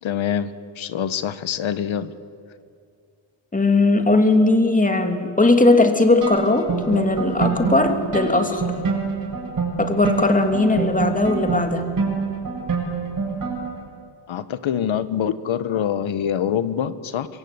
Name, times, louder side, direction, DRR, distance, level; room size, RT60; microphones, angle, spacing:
voice 1, 0.0-2.1 14.3-17.3, left 9 dB, 70° left, 13 dB, 1.3 m, -25 dB
voice 2, 3.5-8.7 9.8-11.9, left 2 dB, 15° left, 5 dB, 2.7 m, -18 dB
sound 1, 6.2-13.9, right 5 dB, 40° right, 7.5 m, -26 dB
24.5 x 22.5 x 9.6 m, 2.3 s
cardioid pair, 115°, 49 cm